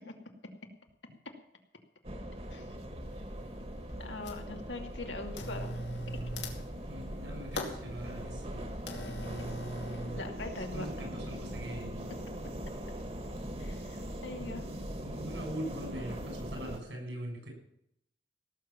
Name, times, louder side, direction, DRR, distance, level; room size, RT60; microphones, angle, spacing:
sound 1, 2.0-16.8, equal, 35° right, 1.8 m, -41 dB
sound 2, 2.4-2.5 3.1-3.6 3.9-4.6 5.3-10.2, equal, 75° left, 2.7 m, -41 dB
voice 1, 4.0-5.7 9.0-9.1 9.9-10.9 13.6-14.6, left 2 dB, 90° left, 3 dB, 2.5 m, -42 dB
voice 2, 6.9-8.7 10.6-12.1 14.3-14.7 15.0-17.5, right 1 dB, 85° right, 2 dB, 7.2 m, -42 dB
17.5 x 7.5 x 7.3 m, 0.73 s
head